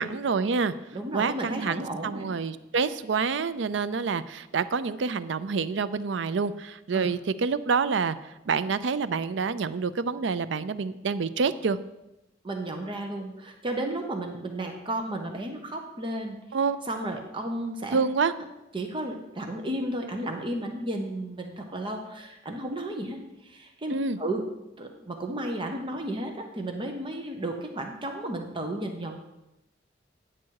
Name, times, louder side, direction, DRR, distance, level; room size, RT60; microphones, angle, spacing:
voice 1, 0.0-0.7 1.1-8.2 8.5-11.8 16.5-16.8 17.9-18.3 23.9-24.2, right 5 dB, 75° right, 14 dB, 0.5 m, -27 dB
voice 2, 0.9-2.4 6.9-7.1 12.4-16.4 16.9-18.0 18.7-24.5 24.8-29.2, right 1 dB, 30° right, 3 dB, 1.0 m, -33 dB
10.0 x 7.3 x 4.7 m, 0.93 s
head